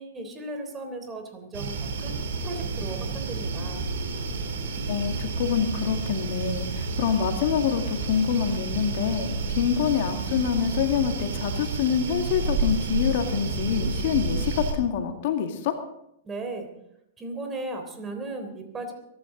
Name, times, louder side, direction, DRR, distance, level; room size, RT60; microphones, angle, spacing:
voice 1, 0.0-3.8 16.2-16.7 17.2-18.9, right 2 dB, 20° right, 5 dB, 3.5 m, -36 dB
sound 1, 1.5-14.7, right 3 dB, 65° right, 3.6 m, -30 dB
voice 2, 4.9-15.8, left 8 dB, 55° left, 5 dB, 2.1 m, -26 dB
23.5 x 12.5 x 3.9 m, 0.78 s
hypercardioid pair, 105°, 0 cm